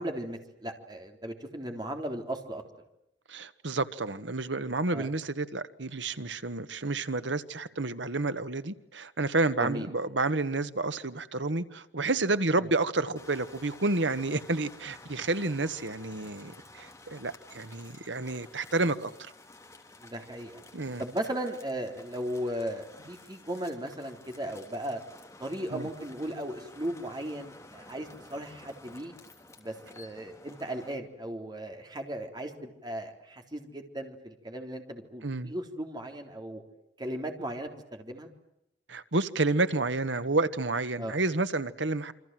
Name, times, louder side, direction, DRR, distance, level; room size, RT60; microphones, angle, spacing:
voice 1, 0.0-2.6 4.9-5.1 9.6-9.9 12.6-12.7 20.0-20.6 21.0-25.0 25.4-29.1 29.6-36.6 37.0-38.3 41.0-41.1, right 1 dB, 25° right, 3.8 m, -36 dB
voice 2, 3.3-19.3 20.7-21.0 25.7-25.9 35.2-35.5 38.9-42.1, right 3 dB, 85° right, 1.5 m, -30 dB
sound 1, 13.2-30.9, left 2 dB, 15° left, 3.4 m, -52 dB
28.0 x 25.5 x 7.7 m
head